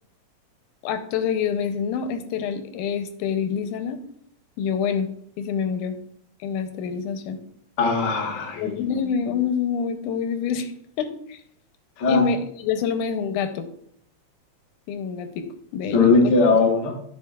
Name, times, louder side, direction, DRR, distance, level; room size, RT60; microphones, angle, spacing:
voice 1, 0.8-4.0 4.6-5.1 5.4-6.0 6.4-7.4 8.6-10.7 11.0-11.4 12.0-13.7 14.9-15.5 15.7-16.3, left 7 dB, 90° left, 8 dB, 2.2 m, -26 dB
voice 2, 7.8-9.0 12.0-12.2 15.9-17.0, left 3 dB, 55° left, 0 dB, 1.2 m, -20 dB
12.0 x 5.3 x 2.3 m, 0.68 s
omnidirectional pair, 3.5 m